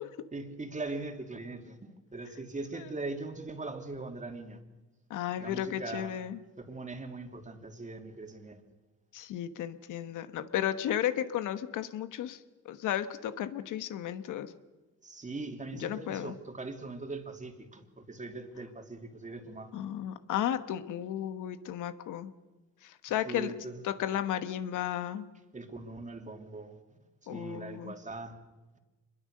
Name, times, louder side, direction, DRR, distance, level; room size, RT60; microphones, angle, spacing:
voice 1, 0.3-4.6 5.4-6.1 6.6-8.6 15.0-19.7 23.2-23.8 25.5-26.8 27.3-28.4, right 3 dB, 25° right, 5 dB, 2.9 m, -41 dB
voice 2, 5.1-6.4 9.1-12.4 12.6-14.5 15.7-16.3 19.7-22.3 22.8-23.5 23.8-25.3 27.3-27.9, left 11 dB, 85° left, 11 dB, 1.3 m, -34 dB
25.5 x 22.0 x 6.6 m, 1.2 s
cardioid pair, 90°, 30 cm